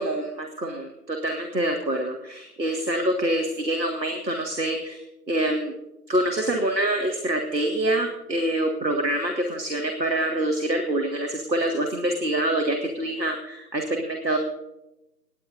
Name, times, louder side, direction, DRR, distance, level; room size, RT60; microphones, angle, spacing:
voice 1, 0.0-5.7 6.1-14.4, right 1 dB, 80° right, 3 dB, 2.1 m, -26 dB
26.0 x 10.5 x 2.6 m, 0.91 s
figure-of-eight pair, 165°, 50 cm